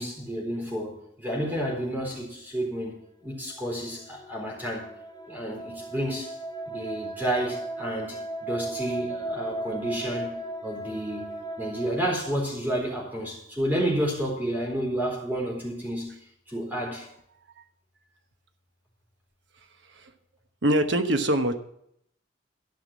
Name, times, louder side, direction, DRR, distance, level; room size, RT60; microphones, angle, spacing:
voice 1, 0.0-4.9 5.3-6.3 6.7-16.1 16.5-17.1, right 1 dB, 10° right, -3 dB, 4.1 m, -30 dB
sound 1, 3.6-12.0, right 2 dB, 20° left, 0.6 m, -36 dB
voice 2, 20.6-21.6, right 1 dB, 65° right, 7 dB, 1.1 m, -23 dB
13.0 x 5.9 x 7.2 m, 0.73 s
head